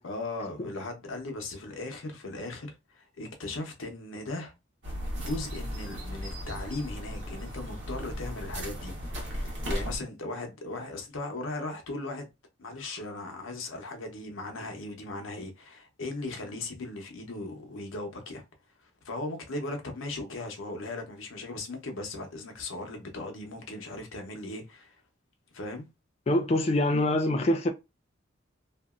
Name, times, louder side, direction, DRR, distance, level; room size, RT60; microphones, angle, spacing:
voice 1, 0.0-4.5 5.1-8.9 9.4-12.3 12.6-18.4 19.0-24.9 25.5-25.9, left 2 dB, 90° left, 0.8 m, -38 dB
sound 1, 4.8-10.0, equal, 60° right, 1.1 m, -36 dB
voice 2, 26.3-27.7, left 1 dB, 30° left, 0.3 m, -24 dB
2.8 x 2.6 x 2.4 m
head